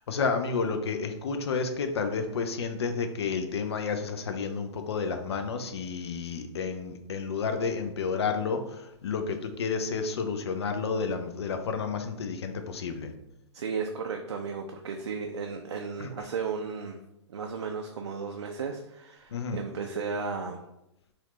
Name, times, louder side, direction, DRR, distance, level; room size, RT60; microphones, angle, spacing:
voice 1, 0.1-13.1 16.0-16.1 19.3-19.6, left 5 dB, 60° left, 7 dB, 0.6 m, -31 dB
voice 2, 13.5-17.0 17.3-20.6, right 5 dB, 70° right, 3 dB, 0.5 m, -34 dB
4.2 x 2.5 x 3.1 m, 0.84 s
figure-of-eight pair, 115°, 15 cm